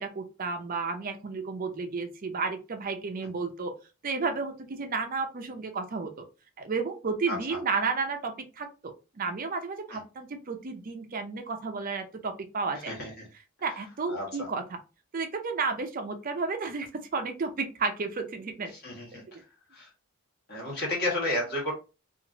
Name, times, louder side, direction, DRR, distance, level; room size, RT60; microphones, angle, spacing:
voice 1, 0.0-3.7 4.0-6.3 6.6-12.9 13.6-14.8 15.1-18.7 19.1-19.2, right 4 dB, 40° right, 6 dB, 0.5 m, -32 dB
voice 2, 7.3-7.6 9.9-10.0 12.7-13.3 14.1-14.5 18.7-19.2 19.7-19.9 20.5-21.7, left 1 dB, 45° left, -3 dB, 1.4 m, -32 dB
2.8 x 2.5 x 2.6 m, 0.31 s
head